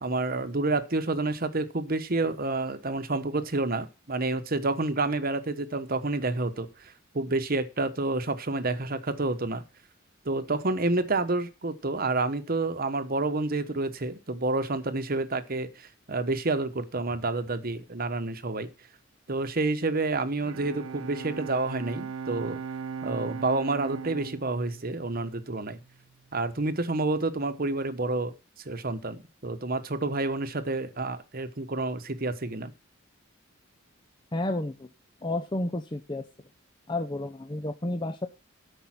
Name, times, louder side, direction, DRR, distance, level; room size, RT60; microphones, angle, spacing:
voice 1, 0.0-9.6 10.2-18.7 19.3-22.6 23.0-25.8 26.3-28.3 28.6-32.7, right 2 dB, 45° right, 1.1 m, -29 dB
Bowed string instrument, 20.4-25.9, right 6 dB, 80° right, 0.5 m, -39 dB
voice 2, 34.3-34.9 35.2-36.2 36.9-38.3, left 2 dB, 20° left, 0.7 m, -31 dB
13.0 x 5.4 x 5.9 m
head